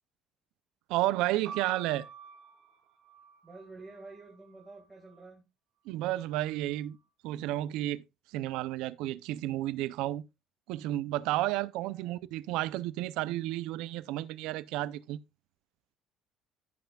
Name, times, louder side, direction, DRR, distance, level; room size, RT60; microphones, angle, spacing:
voice 1, 0.9-2.1 5.9-7.0 7.2-8.0 8.3-10.2 10.7-15.2, right 15 dB, 90° right, 0.5 m, -32 dB
sound 1, 1.4-5.3 6.1-6.8, right 6 dB, 65° right, 3.4 m, -50 dB
voice 2, 3.4-5.5 11.8-12.2, right 3 dB, 15° right, 1.8 m, -50 dB
14.0 x 5.7 x 2.3 m
cardioid pair, 180°, 0 cm